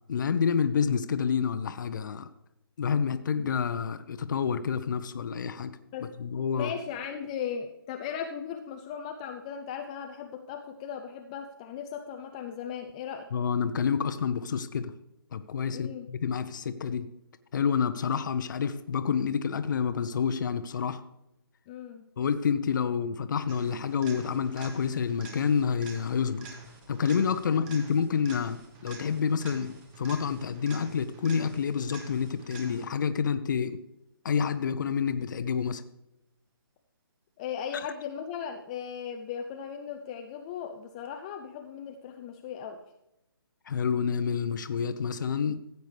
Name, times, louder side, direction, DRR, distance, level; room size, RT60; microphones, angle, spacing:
voice 1, 0.1-2.3 2.8-5.7 6.2-6.7 13.3-14.9 15.3-17.1 17.5-21.0 22.2-26.5 26.9-33.8 34.2-35.8 43.7-45.6, left 6 dB, 50° left, 10 dB, 0.7 m, -28 dB
voice 2, 6.5-13.3 15.7-16.1 21.7-22.1 27.5-27.6 37.4-42.8, left 8 dB, 15° left, 5 dB, 0.4 m, -37 dB
sound 1, 23.5-33.1 41.1-41.2, right 3 dB, 20° right, 1.1 m, -47 dB
15.0 x 8.1 x 3.3 m, 0.87 s
hypercardioid pair, 155°, 13 cm